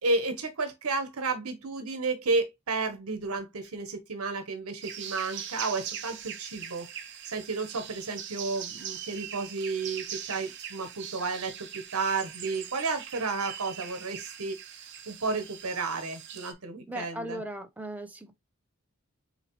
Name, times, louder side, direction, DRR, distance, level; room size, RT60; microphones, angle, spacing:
voice 1, 0.0-6.9 7.2-17.4, right 3 dB, 85° right, 1.0 m, -32 dB
sound 1, 4.8-16.5, right 9 dB, 55° right, 0.8 m, -41 dB
voice 2, 16.9-18.3, right 1 dB, 5° right, 0.7 m, -37 dB
5.8 x 2.9 x 3.0 m
head